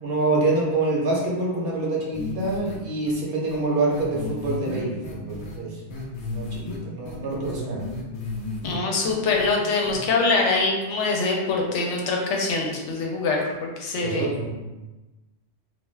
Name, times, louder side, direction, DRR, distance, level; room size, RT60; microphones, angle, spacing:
voice 1, 0.0-5.9 6.2-7.8 14.0-14.5, right 2 dB, 60° right, -4 dB, 0.9 m, -26 dB
sound 1, 2.1-2.8 3.1-3.2 3.5-3.6 3.9-5.6 5.9-6.8 7.1-8.8 9.0-9.5 9.8-10.0, left 3 dB, 55° left, 0.5 m, -34 dB
voice 2, 8.6-14.3, left 3 dB, 85° left, 0 dB, 0.9 m, -24 dB
2.3 x 2.2 x 3.2 m, 1.1 s
omnidirectional pair, 1.2 m